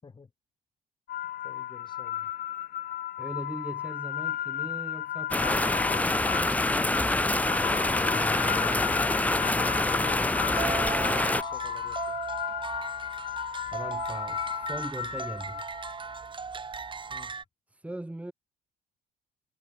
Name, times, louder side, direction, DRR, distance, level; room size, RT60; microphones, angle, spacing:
sound 1, 1.1-16.2, left 12 dB, 60° left, 1.8 m, -35 dB
voice 1, 1.4-2.3 8.5-9.9 11.0-12.2 16.2-16.3 17.1-17.3, left 4 dB, 25° left, 7.3 m, -49 dB
voice 2, 3.2-5.9 13.7-15.8 17.7-18.3, right 1 dB, 10° right, 3.0 m, -39 dB
sound 2, 5.3-11.4, left 2 dB, 10° left, 1.4 m, -26 dB
sound 3, 10.6-17.4, right 5 dB, 30° right, 6.0 m, -37 dB
cardioid pair, 110°, 17 cm